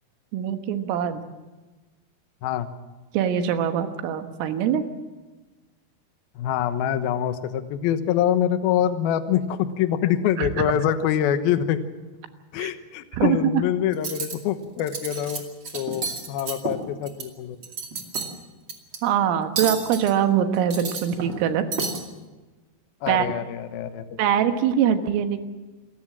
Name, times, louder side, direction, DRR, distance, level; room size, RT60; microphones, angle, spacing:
voice 1, 0.3-1.2 3.1-4.8 10.4-10.7 12.6-12.7 13.1-13.6 19.0-21.6 23.1-23.3 24.2-25.4, right 9 dB, 90° right, 7 dB, 4.0 m, -23 dB
voice 2, 6.4-11.8 12.5-15.4 15.7-17.6 23.0-24.0, left 10 dB, 70° left, 10 dB, 2.4 m, -25 dB
Cutlery silverware, 13.9-14.3 14.8-15.4 15.6-17.2 17.6-18.3 18.7-19.0 19.6-20.1 20.5-21.4 21.7-22.0, right 5 dB, 35° right, 2.2 m, -30 dB
27.0 x 14.5 x 7.5 m, 1.2 s
omnidirectional pair, 5.7 m